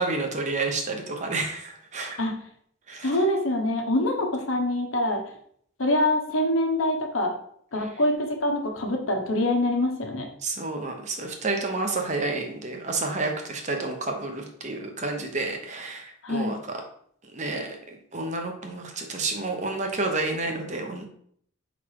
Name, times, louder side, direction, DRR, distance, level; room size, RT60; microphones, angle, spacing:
voice 1, 0.0-2.2 2.9-3.2 7.8-7.9 10.4-16.8 17.3-21.1, right 3 dB, 35° right, 3 dB, 0.9 m, -30 dB
voice 2, 3.0-5.2 5.8-7.3 7.7-10.3 16.2-16.5, left 1 dB, 90° left, 2 dB, 1.1 m, -25 dB
4.9 x 4.0 x 4.7 m, 0.64 s
head